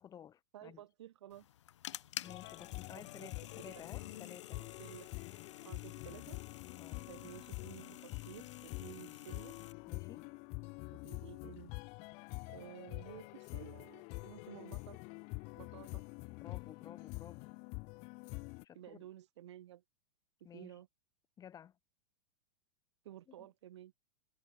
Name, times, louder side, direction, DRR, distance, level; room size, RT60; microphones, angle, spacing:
voice 1, 0.0-0.8 2.2-4.6 6.7-7.1 9.9-10.3 16.3-17.6 18.6-19.0 20.4-20.8 21.4-21.8 23.4-23.5, left 9 dB, 25° left, 1.7 m, -54 dB
voice 2, 0.5-1.5 2.9-3.3 3.7-3.8 4.5-5.1 5.6-6.4 7.1-9.6 10.9-11.7 12.5-15.0 15.6-16.0 18.7-19.8 20.5-20.9 23.0-23.9, right 12 dB, 70° right, 1.1 m, -53 dB
sound 1, 1.3-9.7, left 11 dB, 80° left, 0.5 m, -51 dB
sound 2, 2.2-18.6, left 30 dB, 45° left, 0.7 m, -46 dB
hypercardioid pair, 115°, 15 cm